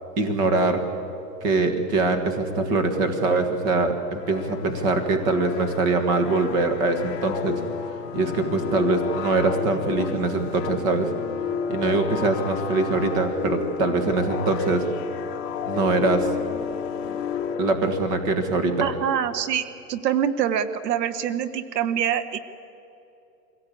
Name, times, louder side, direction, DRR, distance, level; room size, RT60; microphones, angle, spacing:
voice 1, 0.2-0.8 1.4-7.6 8.1-11.1 11.7-14.9 15.7-16.3 17.6-18.9, right 3 dB, 25° right, 7 dB, 1.7 m, -23 dB
sound 1, 4.2-18.3, left 7 dB, 40° left, 1.3 m, -32 dB
voice 2, 18.8-22.4, right 9 dB, 80° right, 13 dB, 1.2 m, -25 dB
23.5 x 16.5 x 8.5 m, 2.8 s
supercardioid pair, 165°, 48 cm